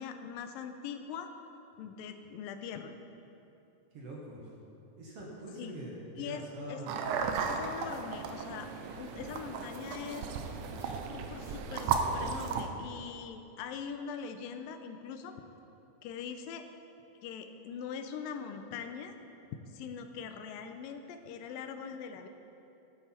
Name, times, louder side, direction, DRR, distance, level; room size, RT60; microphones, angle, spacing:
voice 1, 0.0-1.3 1.8-2.9 5.6-5.7 6.2-6.4 6.7-6.8 7.5-8.7 9.0-10.3 10.8-15.3 16.0-16.7 17.2-19.1 19.7-22.3, left 7 dB, 85° left, 7 dB, 2.4 m, -42 dB
voice 2, 3.9-4.6 5.0-7.0 8.8-9.0, right 1 dB, 55° right, -3 dB, 2.0 m, -44 dB
sound 1, 6.9-12.7, right 5 dB, 75° right, 2.1 m, -35 dB
12.5 x 9.9 x 4.4 m, 2.8 s
omnidirectional pair, 3.9 m